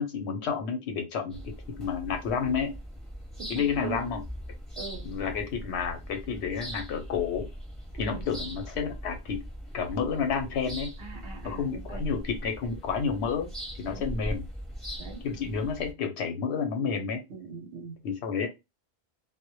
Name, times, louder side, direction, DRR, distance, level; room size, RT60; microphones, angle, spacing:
voice 1, 0.0-1.4 1.8-2.7 3.5-4.2 5.0-7.5 8.0-9.4 9.7-10.9 11.4-13.5 13.8-14.5 15.2-17.2 18.0-18.5, left 6 dB, 85° left, 5 dB, 0.9 m, -30 dB
sound 1, 1.3-15.9, equal, ahead, 0.8 m, -40 dB
voice 2, 3.4-4.0 4.8-5.0 8.0-8.2 11.0-12.0 13.9-14.1 15.0-15.2 17.3-18.0, right 5 dB, 80° right, 1 dB, 1.0 m, -41 dB
2.1 x 2.0 x 2.9 m, 0.23 s
omnidirectional pair, 1.1 m